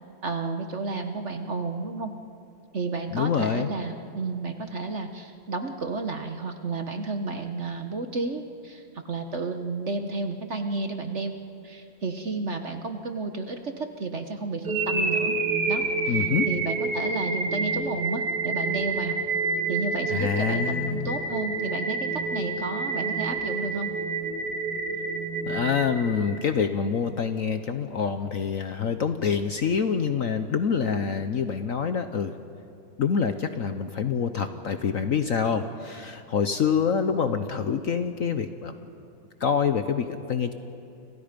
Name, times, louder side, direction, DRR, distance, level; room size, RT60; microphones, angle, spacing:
voice 1, 0.2-2.1 2.7-11.3 11.6-15.3 15.7-16.2 16.5-19.2 19.7-23.9, right 3 dB, 45° right, 6 dB, 1.2 m, -32 dB
voice 2, 3.1-3.7 16.1-16.5 20.1-21.1 25.5-32.3 33.0-38.7 39.4-40.5, left 6 dB, 55° left, 8 dB, 1.0 m, -26 dB
sound 1, 14.6-26.7, right 3 dB, 60° right, 2.5 m, -28 dB
30.0 x 26.5 x 5.2 m, 2.6 s
omnidirectional pair, 2.0 m